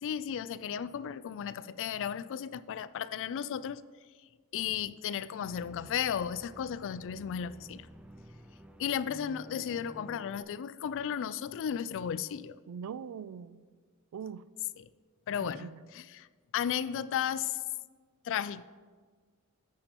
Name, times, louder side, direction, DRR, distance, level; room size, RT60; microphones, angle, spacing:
voice 1, 0.0-3.8 4.5-7.9 8.8-12.6 14.8-14.9 15.3-16.3 16.5-17.6 18.2-18.6, left 8 dB, 60° left, 0.3 m, -34 dB
sound 1, 5.4-10.4, equal, 5° right, 0.5 m, -51 dB
voice 2, 12.7-13.6 14.1-14.4 15.4-15.8, right 7 dB, 85° right, 0.3 m, -41 dB
10.5 x 8.9 x 3.0 m
head